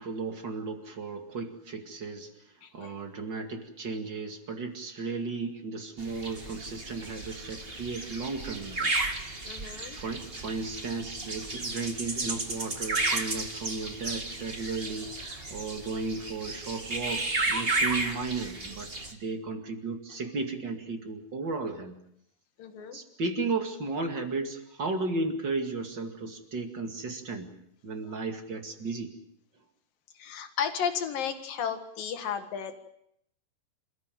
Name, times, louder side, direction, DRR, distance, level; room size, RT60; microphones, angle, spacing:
voice 1, 0.0-2.3 2.6-8.9 9.3-9.4 10.0-18.9 19.2-22.0 22.9-27.5 27.8-29.1, right 3 dB, 35° right, 5 dB, 2.0 m, -34 dB
voice 2, 2.6-2.9 9.4-10.0 22.6-23.0 30.1-32.8, left 7 dB, 60° left, 7 dB, 3.2 m, -33 dB
sound 1, 6.0-19.1, right 2 dB, 50° right, 0.6 m, -33 dB
27.5 x 15.5 x 9.3 m, 0.74 s
omnidirectional pair, 4.9 m